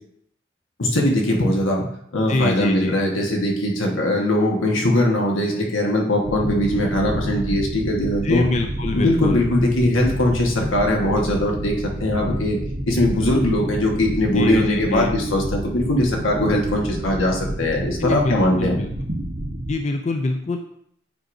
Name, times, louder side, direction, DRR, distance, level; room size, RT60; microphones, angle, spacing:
voice 1, 0.8-1.9 2.1-8.5 8.9-12.6 12.9-18.8, left 1 dB, 85° left, 0 dB, 1.4 m, -20 dB
voice 2, 2.3-3.0 8.2-9.5 14.4-15.1 18.0-18.9 19.7-20.6, left 3 dB, 35° left, 5 dB, 0.3 m, -25 dB
sound 1, 6.2-19.7, right 1 dB, 45° right, 0.8 m, -29 dB
9.0 x 4.8 x 2.6 m, 0.71 s
head